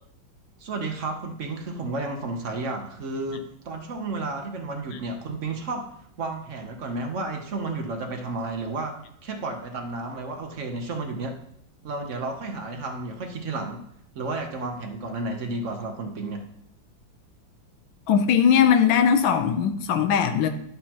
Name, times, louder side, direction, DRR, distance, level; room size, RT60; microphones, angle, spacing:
voice 1, 0.6-5.9 6.2-8.9 9.2-11.4 11.8-13.8 14.1-16.4, right 3 dB, 50° right, 4 dB, 1.0 m, -32 dB
voice 2, 18.1-20.5, left 7 dB, 85° left, 8 dB, 1.5 m, -20 dB
11.0 x 6.6 x 2.9 m, 0.71 s
omnidirectional pair, 2.1 m